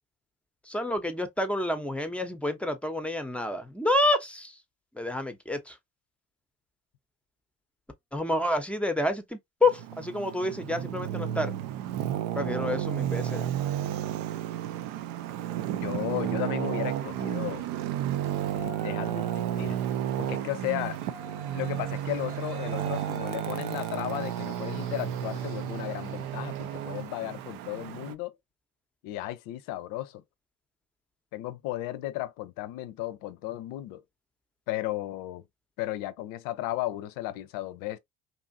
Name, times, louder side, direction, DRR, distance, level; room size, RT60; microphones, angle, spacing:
voice 1, 0.6-4.6 4.9-5.8 8.1-11.5 12.3-13.7, left 1 dB, 5° left, 0.7 m, -29 dB
Traffic noise roadway noise, 9.6-28.1, right 11 dB, 70° right, 0.5 m, -32 dB
voice 2, 15.7-17.6 18.8-19.8 20.2-21.0 21.5-28.4 29.0-30.2 31.3-34.0 34.7-35.4 35.8-38.0, left 15 dB, 65° left, 0.6 m, -34 dB
Yell, 16.9-27.1, left 1 dB, 85° right, 1.3 m, -49 dB
2.7 x 2.5 x 2.5 m
hypercardioid pair, 65°, 36 cm